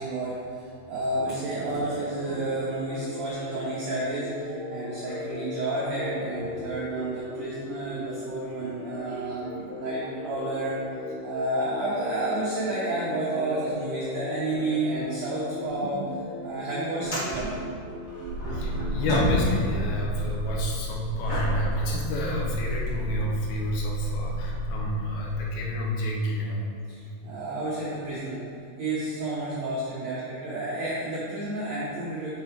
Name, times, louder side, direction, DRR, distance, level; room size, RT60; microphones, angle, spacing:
voice 1, 0.0-10.7 11.2-16.0 16.4-17.5 26.9-28.4 28.8-32.4, right 2 dB, 75° right, -8 dB, 1.5 m, -31 dB
sound 1, 1.1-19.2, left 1 dB, 60° left, 2.1 m, -38 dB
sound 2, 15.7-15.8 16.0-16.1 16.9-19.8 20.1-22.8 23.5-23.6 27.7-27.9 29.2-29.3, equal, 40° left, 1.5 m, -33 dB
sound 3, 18.2-25.4, equal, 55° right, 1.6 m, -31 dB
voice 2, 18.5-26.7, equal, 80° left, -1 dB, 2.7 m, -30 dB
6.9 x 4.8 x 4.4 m, 2.4 s
omnidirectional pair, 4.5 m